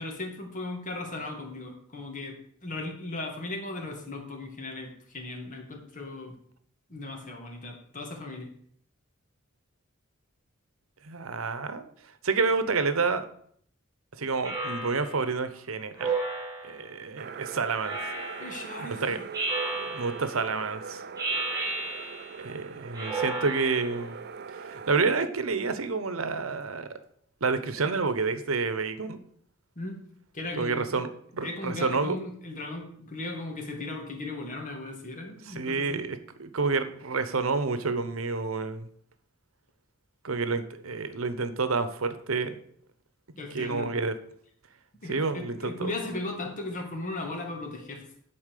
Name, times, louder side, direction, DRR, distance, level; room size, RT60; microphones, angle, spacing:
voice 1, 0.0-2.3 2.6-6.3 6.9-8.5 18.4-19.2 29.8-29.9 30.3-31.0 31.4-36.0 43.4-44.0 45.0-48.0, left 2 dB, 40° left, 2 dB, 2.1 m, -37 dB
voice 2, 11.0-11.9 12.2-13.2 14.2-16.1 16.6-18.0 18.8-19.2 19.8-21.0 22.4-24.1 24.5-26.9 27.4-29.2 30.5-32.2 35.4-38.9 40.2-42.6 43.5-44.2 45.1-45.9, right 4 dB, 80° right, 11 dB, 0.9 m, -29 dB
Speech synthesizer, 14.4-15.2 16.0-16.9 17.8-18.6 19.3-20.3 21.2-22.4 22.9-24.0, right 3 dB, 20° right, 2.5 m, -33 dB
sound 1, 17.2-25.0, right 6 dB, 50° right, 0.5 m, -42 dB
11.0 x 4.3 x 6.7 m, 0.64 s
head